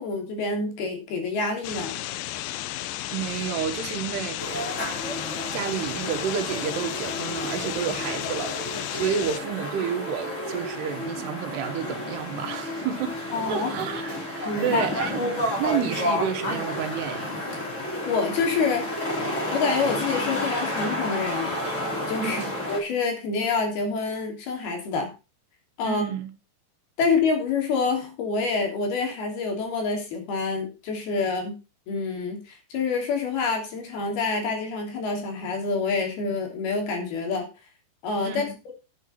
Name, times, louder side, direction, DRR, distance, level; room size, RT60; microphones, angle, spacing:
voice 1, 0.0-2.0 13.3-13.7 14.5-14.8 18.1-18.9 19.5-21.6 22.1-22.4 22.7-25.1 25.8-26.0 27.0-31.6 31.9-37.5 38.0-38.7, left 4 dB, 65° left, 4.9 m, -27 dB
sound 1, 1.6-9.4, left 14 dB, 80° left, 2.0 m, -33 dB
voice 2, 3.1-4.4 5.5-15.1 15.6-17.3 22.2-22.5 25.8-26.3 38.2-38.5, right 8 dB, 75° right, 3.4 m, -30 dB
sound 2, 4.4-22.8, left 1 dB, 20° left, 3.3 m, -31 dB
9.6 x 8.9 x 5.7 m
omnidirectional pair, 4.9 m